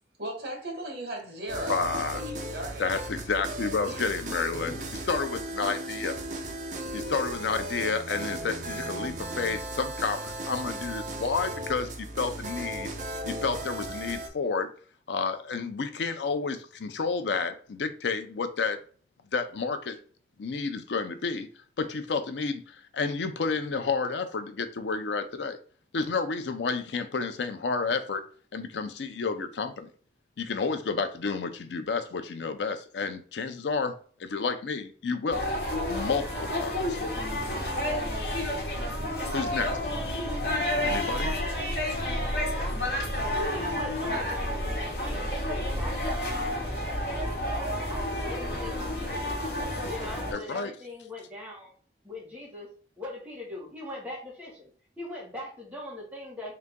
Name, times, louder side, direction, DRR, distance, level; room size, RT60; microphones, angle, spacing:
voice 1, 0.2-2.9 3.8-4.0, right 1 dB, 65° right, 1.4 m, -37 dB
sound 1, 1.5-14.3, right 1 dB, 45° right, 0.7 m, -36 dB
voice 2, 1.7-2.2 2.8-6.2 6.9-12.9 13.3-14.7 15.1-18.8 19.3-20.0 20.4-21.5 21.8-25.6 25.9-28.3 28.5-29.9 30.4-35.5 35.9-37.0 39.3-39.8 40.8-41.3 50.3-50.7, left 4 dB, 80° left, 0.5 m, -30 dB
sound 2, 35.3-50.3, left 1 dB, 60° left, 1.3 m, -30 dB
voice 3, 43.4-49.4 49.8-51.7 52.0-54.7 55.0-56.5, left 1 dB, 10° right, 1.4 m, -41 dB
3.8 x 2.7 x 3.5 m
head